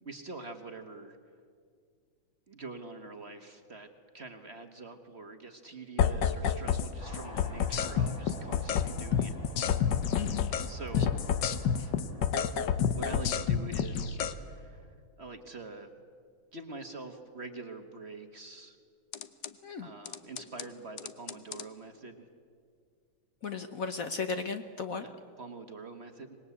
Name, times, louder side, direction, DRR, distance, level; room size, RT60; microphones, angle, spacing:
voice 1, 0.0-1.2 2.5-3.9 4.1-9.3 10.6-11.2 12.9-14.9 15.2-15.9 16.5-18.8 19.8-22.3 25.0-26.4, right 3 dB, 35° right, 6 dB, 1.4 m, -45 dB
Nord keys Dirty, 6.0-6.9 7.1-10.7 10.9-14.3 19.1-19.5 20.1-20.6 21.0-21.6, left 8 dB, 70° left, 1.6 m, -29 dB
sound 1, 7.0-14.9, equal, 20° left, 2.6 m, -48 dB
voice 2, 10.1-10.5 10.9-11.1 11.8-11.9 19.6-19.9 23.4-25.0, left 5 dB, 50° left, 8 dB, 1.2 m, -36 dB
25.5 x 20.5 x 8.3 m, 2.1 s
omnidirectional pair, 2.1 m